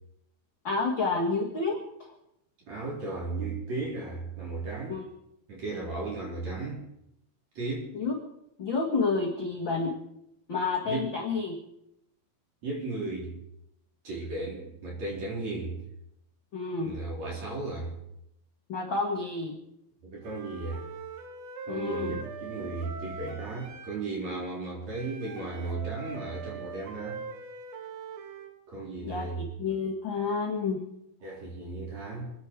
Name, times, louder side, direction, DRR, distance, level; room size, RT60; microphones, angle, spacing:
voice 1, 0.6-2.1 4.9-5.1 7.9-8.1 8.6-10.0 10.5-11.6 16.5-17.0 18.7-19.6 21.7-22.2 29.0-30.8, left 4 dB, 55° left, -1 dB, 1.3 m, -30 dB
voice 2, 2.7-5.0 5.5-6.8 7.5-7.9 10.9-11.1 12.6-13.3 14.0-15.8 16.8-17.9 20.0-20.8 21.7-27.2 28.7-29.4 31.2-32.3, right 3 dB, 40° right, -3 dB, 5.0 m, -35 dB
Wind instrument woodwind instrument, 20.2-24.0 24.9-28.5, right 4 dB, 65° right, 3.0 m, -42 dB
27.0 x 10.5 x 4.8 m, 0.80 s
omnidirectional pair, 5.1 m